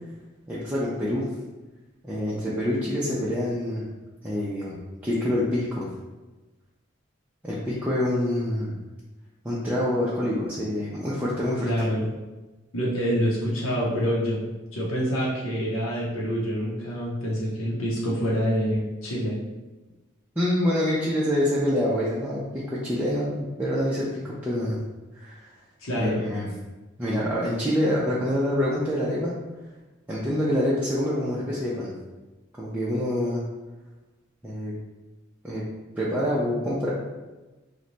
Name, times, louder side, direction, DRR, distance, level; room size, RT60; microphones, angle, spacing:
voice 1, 0.5-1.3 2.0-3.9 4.2-4.8 5.0-5.9 7.4-8.7 9.4-11.7 20.4-24.8 25.2-25.5 25.9-26.5 27.0-29.3 30.1-31.9 32.6-33.4 34.4-34.7 35.4-35.6 36.0-36.9, left 1 dB, 10° right, -8 dB, 0.5 m, -26 dB
voice 2, 11.6-12.1 12.7-14.4 14.7-19.4 25.8-26.2, equal, 90° left, -5 dB, 0.7 m, -26 dB
3.0 x 2.2 x 3.9 m, 1.1 s
head